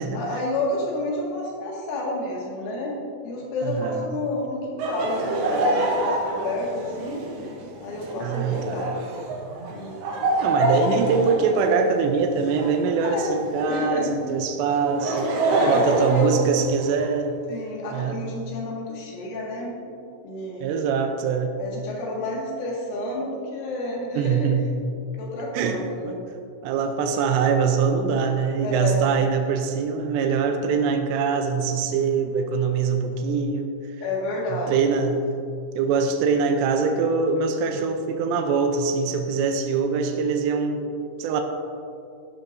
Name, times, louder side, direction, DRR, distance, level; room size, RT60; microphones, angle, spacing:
voice 1, 0.1-3.0 3.2-7.2 7.8-9.0 9.7-10.0 13.0-13.3 13.7-14.1 15.5-16.4 17.5-19.8 20.2-20.7 21.6-24.5 25.1-26.2 28.6-29.2 34.0-34.8, left 2 dB, 75° left, -3 dB, 4.4 m, -30 dB
voice 2, 3.6-4.1 8.2-8.8 10.4-15.3 15.7-17.4 17.9-18.2 20.6-21.5 24.2-24.7 25.5-26.1 26.6-33.7 34.5-35.3 35.8-41.4, right 5 dB, 90° right, 5 dB, 2.5 m, -23 dB
Laughter, 4.8-13.9 14.7-17.1, right 1 dB, 70° right, 3.3 m, -26 dB
14.0 x 11.0 x 2.7 m, 2.5 s
omnidirectional pair, 5.8 m